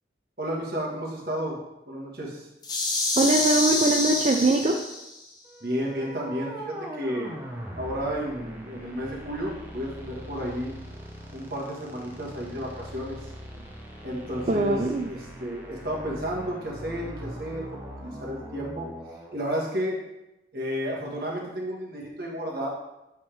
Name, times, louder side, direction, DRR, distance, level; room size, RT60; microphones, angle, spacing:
voice 1, 0.4-1.6 1.9-2.5 5.6-7.3 7.7-10.7 11.3-13.3 14.0-18.9 19.3-20.0 20.5-22.7, equal, 55° right, -3 dB, 1.5 m, -32 dB
sound 1, 2.6-5.2, left 2 dB, 25° left, 0.7 m, -27 dB
voice 2, 3.2-4.8 14.5-15.1, right 2 dB, 35° right, 2 dB, 0.3 m, -22 dB
sound 2, 5.4-19.3, right 1 dB, 10° right, 0.7 m, -41 dB
8.2 x 3.5 x 3.4 m, 0.94 s
head